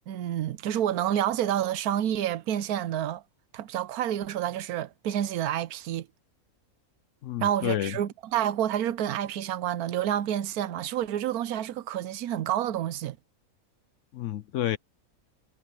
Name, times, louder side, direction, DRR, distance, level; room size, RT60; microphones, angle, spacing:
voice 1, 0.1-3.2 3.5-6.1 7.4-13.2, right 11 dB, 90° right, 1.2 m, -29 dB
voice 2, 7.2-8.0 14.1-14.8, left 12 dB, 65° left, 0.9 m, -29 dB
omnidirectional pair, 1.5 m